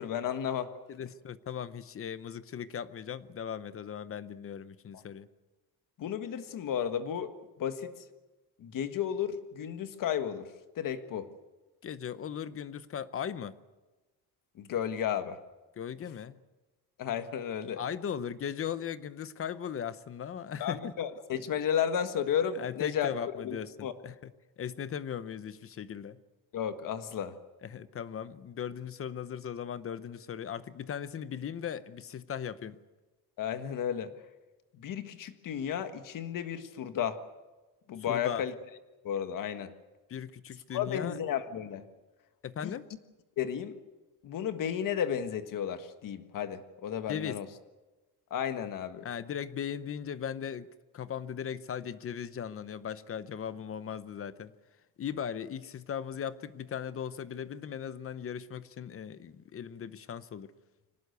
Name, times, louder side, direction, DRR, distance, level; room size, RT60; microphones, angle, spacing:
voice 1, 0.0-0.7 6.0-8.0 8.6-11.3 14.5-15.4 17.0-17.8 20.6-23.2 23.4-23.6 23.8-23.9 26.5-27.4 33.4-34.1 34.7-37.2 37.9-38.5 39.0-39.7 40.7-41.8 42.6-42.8 43.4-43.8 44.2-47.5 48.3-49.1, left 9 dB, 60° left, 9 dB, 1.6 m, -33 dB
voice 2, 0.9-5.3 11.8-13.6 15.8-16.4 17.8-20.9 22.6-24.3 24.6-26.2 27.6-32.8 38.1-38.4 40.1-41.2 42.4-42.9 47.1-47.4 49.0-50.7 50.9-54.5 55.0-60.5, left 8 dB, 35° left, 15 dB, 0.8 m, -38 dB
24.5 x 18.5 x 8.1 m, 1.2 s
cardioid pair, 175°, 38 cm